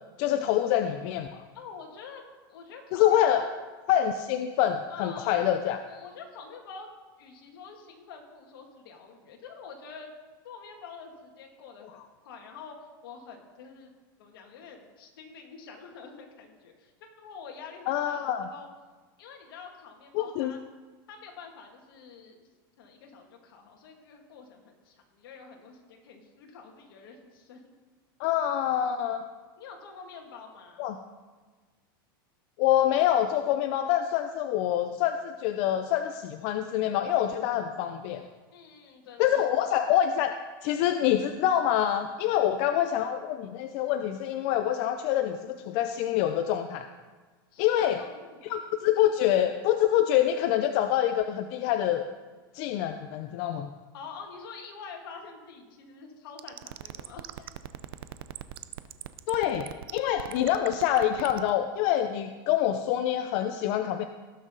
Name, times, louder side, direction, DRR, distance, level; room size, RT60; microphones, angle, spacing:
voice 1, 0.2-1.4 2.9-3.4 3.9-5.8 17.9-18.5 20.1-20.5 28.2-29.2 30.8-31.0 32.6-38.2 39.2-40.3 40.6-46.9 47.6-48.0 48.5-52.0 52.5-53.7 59.3-64.0, left 11 dB, 55° left, 7 dB, 0.6 m, -26 dB
voice 2, 1.5-2.2 2.5-3.6 4.9-5.5 5.9-6.9 7.2-10.1 10.4-12.0 12.2-13.9 14.2-16.9 17.2-18.7 19.2-20.6 21.1-22.5 22.8-27.7 29.6-30.9 38.5-39.7 47.5-48.1 53.9-57.5, left 5 dB, 75° left, 2 dB, 2.3 m, -46 dB
sound 1, 56.4-61.5, right 13 dB, 80° right, 0.6 m, -39 dB
18.5 x 6.2 x 4.0 m, 1.4 s
supercardioid pair, 135°, 12 cm